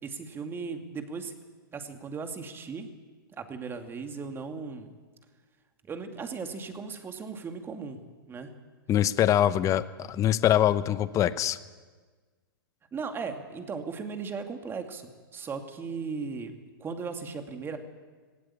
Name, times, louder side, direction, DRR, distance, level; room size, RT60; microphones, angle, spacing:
voice 1, 0.0-1.3 1.7-2.9 3.3-4.9 5.8-8.5 12.9-16.5 16.8-17.8, right 5 dB, 20° right, 6 dB, 2.4 m, -37 dB
voice 2, 8.9-11.6, left 11 dB, 25° left, 15 dB, 0.9 m, -24 dB
18.5 x 18.5 x 8.7 m, 1.4 s
hypercardioid pair, 110°, 12 cm